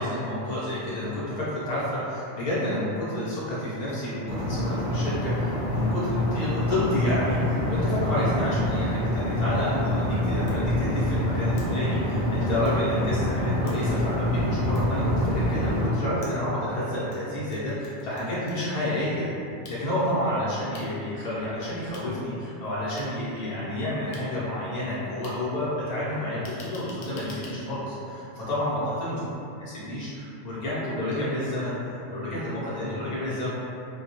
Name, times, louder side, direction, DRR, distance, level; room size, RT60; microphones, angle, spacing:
voice 1, 0.0-19.3 19.7-29.2 29.6-33.5, left 1 dB, 40° left, -9 dB, 0.8 m, -30 dB
sound 1, 4.3-15.9, left 1 dB, 45° right, 0.8 m, -26 dB
sound 2, 10.5-10.6 11.6-11.7 12.6-12.7 13.7-13.8 14.7-14.8 16.2-17.2 17.5-18.7 19.6-19.8 20.7-20.8 21.9-22.0 23.0-23.1 24.1-24.2 25.2-25.3 26.4-27.5, left 3 dB, 90° left, 0.9 m, -46 dB
2.3 x 2.2 x 2.8 m, 2.6 s
omnidirectional pair, 1.2 m